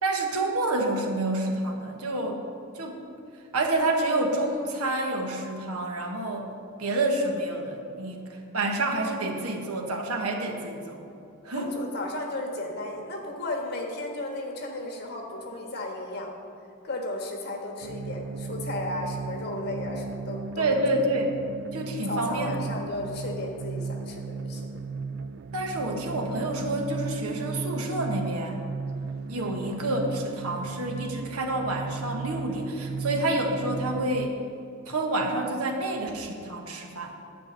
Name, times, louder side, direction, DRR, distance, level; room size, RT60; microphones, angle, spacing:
voice 1, 0.0-2.4 2.7-3.0 3.5-6.5 6.8-11.0 11.4-11.8 20.6-21.4 21.7-22.6 25.5-28.6 29.3-34.4 34.9-37.1, right 2 dB, 85° right, 3 dB, 1.3 m, -28 dB
voice 2, 11.5-16.3 16.8-20.7 22.0-24.6 29.3-29.6, left 2 dB, 45° left, 1 dB, 1.4 m, -34 dB
sound 1, 17.8-34.3, right 4 dB, 50° right, 0.4 m, -35 dB
10.5 x 5.1 x 8.0 m, 2.6 s
head